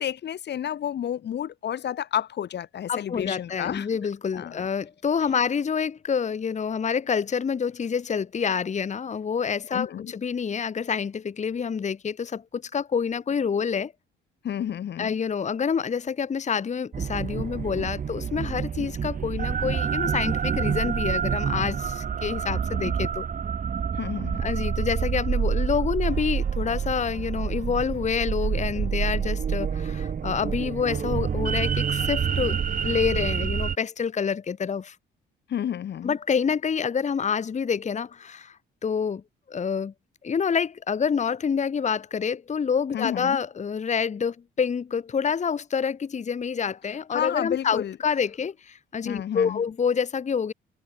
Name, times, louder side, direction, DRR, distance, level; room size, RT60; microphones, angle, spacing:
voice 1, 0.0-3.9 4.3-4.6 9.7-10.1 14.4-15.2 23.9-24.5 35.5-36.1 42.9-43.4 47.1-48.0 49.0-49.6, left 10 dB, 60° left, 1.6 m, -31 dB
voice 2, 2.9-13.9 15.0-23.2 24.4-32.6 32.8-35.0 36.0-39.2 39.5-39.9 40.2-50.5, left 6 dB, 35° left, 1.2 m, -27 dB
sound 1, 16.9-33.8, right 7 dB, 45° right, 1.4 m, -27 dB
cardioid pair, 90°, 20 cm